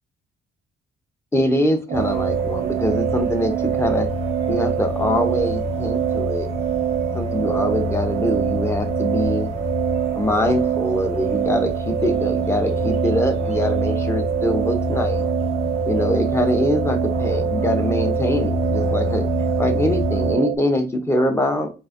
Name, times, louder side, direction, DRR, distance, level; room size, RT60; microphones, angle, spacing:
voice 1, 1.3-4.1 4.5-6.5 7.1-9.5 10.2-15.2 15.9-19.3 19.6-21.7, left 1 dB, 15° left, 7 dB, 0.6 m, -23 dB
sound 1, 1.9-20.4, left 4 dB, 30° left, 1.1 m, -28 dB
sound 2, 1.9-20.6, right 12 dB, 40° right, 0.4 m, -25 dB
3.8 x 2.6 x 2.5 m, 0.33 s
cardioid pair, 90°, 20 cm